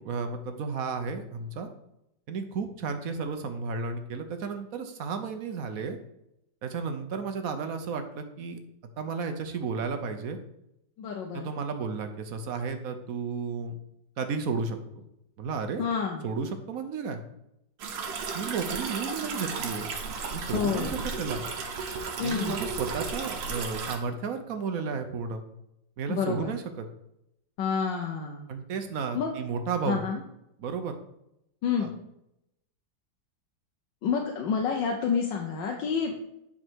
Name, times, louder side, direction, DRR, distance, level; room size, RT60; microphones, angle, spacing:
voice 1, 0.0-1.7 2.3-6.0 6.6-8.6 9.0-10.4 11.3-13.7 14.2-15.0 15.4-15.8 16.2-17.2 18.3-19.9 20.3-21.5 22.2-25.4 26.0-26.9 28.5-30.0 30.6-30.9 31.8-31.9, right 5 dB, 60° right, 7 dB, 1.0 m, -33 dB
voice 2, 11.0-11.5 15.8-16.2 20.5-21.0 22.2-22.6 26.1-26.5 27.6-28.5 29.1-29.3 29.8-30.2 31.6-31.9 34.0-36.1, left 6 dB, 80° left, 1 dB, 1.5 m, -28 dB
sound 1, 17.8-24.0, right 4 dB, 80° right, 1.7 m, -34 dB
9.1 x 4.3 x 4.6 m, 0.84 s
omnidirectional pair, 2.0 m